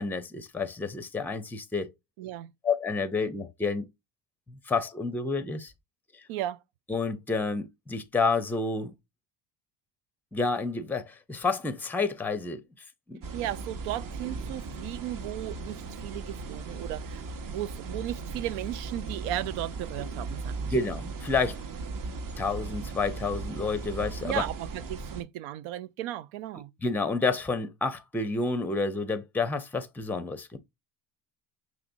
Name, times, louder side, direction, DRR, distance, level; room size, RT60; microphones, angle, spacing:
voice 1, 0.0-1.9 2.6-3.9 4.5-5.7 6.1-6.2 6.9-8.9 10.3-12.6 13.1-13.2 20.6-21.6 22.4-24.4 26.8-30.6, left 4 dB, 5° left, 0.5 m, -29 dB
voice 2, 2.2-2.5 6.3-6.6 13.3-17.2 17.5-20.7 24.2-26.7, right 13 dB, 80° right, 0.5 m, -35 dB
sound 1, 13.2-25.2, right 4 dB, 45° right, 0.8 m, -37 dB
5.8 x 3.1 x 2.6 m
supercardioid pair, 85°, 48 cm